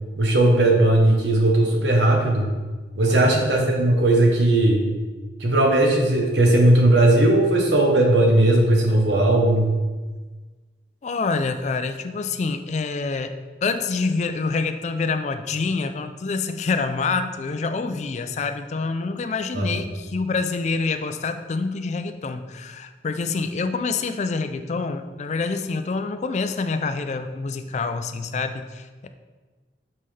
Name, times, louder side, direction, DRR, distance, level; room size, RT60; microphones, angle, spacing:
voice 1, 0.2-2.5 2.9-4.8 5.4-9.7 19.5-19.7, right 1 dB, 90° right, 1 dB, 1.1 m, -17 dB
voice 2, 3.1-3.4 11.0-29.1, left 4 dB, 40° left, 9 dB, 0.4 m, -27 dB
5.5 x 5.4 x 3.3 m, 1.3 s
head